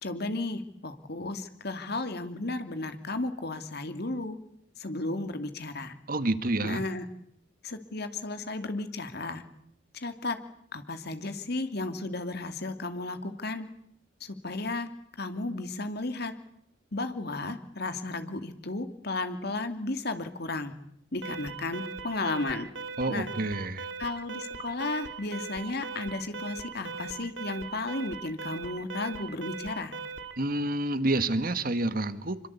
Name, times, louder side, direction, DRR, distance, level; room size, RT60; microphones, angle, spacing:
voice 1, 0.0-4.4 4.8-5.9 6.6-7.0 7.6-9.4 9.9-10.4 10.7-13.7 14.2-14.9 15.2-16.3 16.9-20.7 21.1-22.7 23.1-23.3 24.0-29.9, left 2 dB, 60° left, 8 dB, 2.7 m, -34 dB
voice 2, 6.1-6.8 23.0-23.9 30.4-32.4, right 2 dB, 50° right, 13 dB, 1.8 m, -28 dB
Alarm, 21.2-30.4, right 5 dB, 75° right, 2.6 m, -40 dB
28.0 x 24.0 x 8.5 m, 0.71 s
head